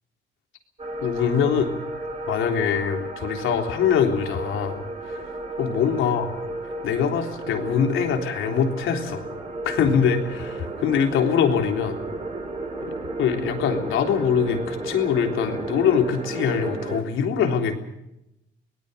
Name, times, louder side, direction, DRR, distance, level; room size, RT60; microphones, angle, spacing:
sound 1, 0.8-17.0, right 2 dB, 30° right, 5.9 m, -33 dB
voice 1, 1.0-1.7 2.3-5.3 5.6-6.3 6.8-9.2 9.7-12.0 12.8-12.9 13.2-17.7, left 7 dB, 85° left, 4 dB, 3.6 m, -23 dB
24.5 x 19.0 x 6.8 m, 0.87 s
cardioid pair, 90°, 20 cm